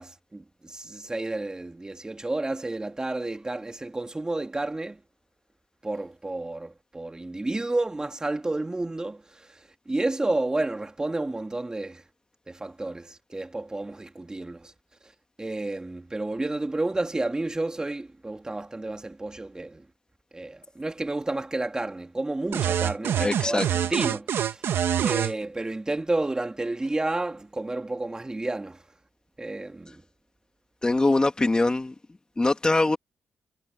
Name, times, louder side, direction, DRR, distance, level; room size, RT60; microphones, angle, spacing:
voice 1, 0.0-5.0 5.8-9.5 9.9-12.0 12.5-14.7 15.4-19.9 20.3-24.7 25.0-28.8 29.4-30.0, right 2 dB, 20° right, 2.8 m, -31 dB
sound 1, 22.5-25.3, right 10 dB, 75° right, 1.3 m, -25 dB
voice 2, 23.2-23.7 30.8-31.9 32.4-33.0, left 2 dB, 20° left, 2.0 m, -22 dB
cardioid pair, 85°, 4 cm